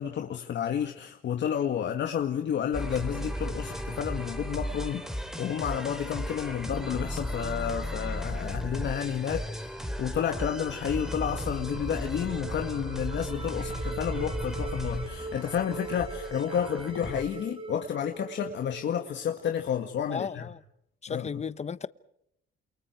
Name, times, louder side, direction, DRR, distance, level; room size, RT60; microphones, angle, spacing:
voice 1, 0.0-20.4 21.1-21.3, left 8 dB, 65° left, 2.0 m, -31 dB
sound 1, 2.7-17.3, equal, ahead, 3.5 m, -35 dB
sound 2, 10.5-19.7, right 2 dB, 25° right, 2.8 m, -42 dB
voice 2, 20.1-20.6 21.0-21.9, left 6 dB, 35° left, 1.1 m, -34 dB
28.5 x 28.0 x 4.6 m
cardioid pair, 90°, 20 cm